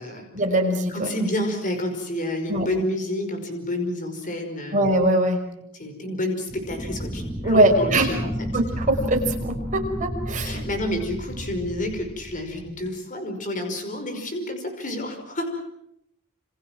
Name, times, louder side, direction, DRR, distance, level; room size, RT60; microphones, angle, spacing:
voice 1, 0.3-1.1 2.5-2.7 4.7-5.5 7.4-8.2 8.5-10.7, right 1 dB, 35° right, 2 dB, 5.7 m, -22 dB
voice 2, 0.9-4.9 5.7-8.3 10.4-15.6, left 1 dB, 40° left, 5 dB, 5.5 m, -29 dB
sound 1, 6.5-13.0, equal, ahead, 1.6 m, -32 dB
28.5 x 28.0 x 6.2 m, 0.76 s
head